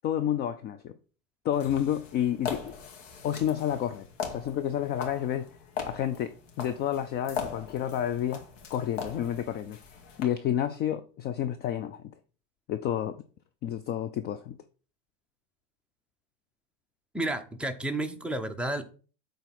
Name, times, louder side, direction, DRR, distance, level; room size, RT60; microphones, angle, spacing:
voice 1, 0.0-1.0 1.4-2.7 3.2-5.5 5.9-6.3 6.6-8.5 8.7-9.8 10.2-12.1 12.7-13.2 13.6-14.6, left 10 dB, 25° left, 0.4 m, -30 dB
sound 1, 1.5-10.2, left 6 dB, 75° left, 2.2 m, -40 dB
voice 2, 17.1-19.0, right 1 dB, 5° right, 0.8 m, -31 dB
8.1 x 4.1 x 5.9 m
supercardioid pair, 130°, 39 cm